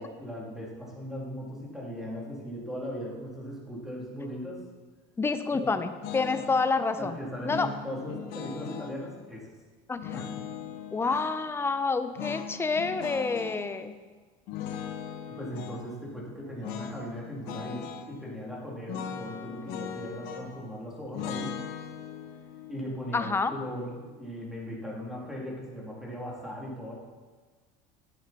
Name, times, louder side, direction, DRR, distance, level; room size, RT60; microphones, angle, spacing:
voice 1, 0.0-4.6 5.5-5.7 6.4-6.5 7.0-9.5 10.1-10.4 15.3-21.6 22.7-26.9, equal, ahead, -4 dB, 2.6 m, -38 dB
voice 2, 5.2-7.2 7.4-7.7 9.9-10.2 10.9-13.9 23.1-23.5, left 4 dB, 15° left, 10 dB, 0.5 m, -28 dB
sound 1, 6.0-6.7 7.5-9.0 10.0-11.4 12.2-13.6 14.5-15.8 16.6-17.0 17.3-18.1 18.9-20.6 21.1-24.2, left 8 dB, 70° left, 1.2 m, -39 dB
10.5 x 8.6 x 4.1 m, 1.4 s
cardioid pair, 135°, 17 cm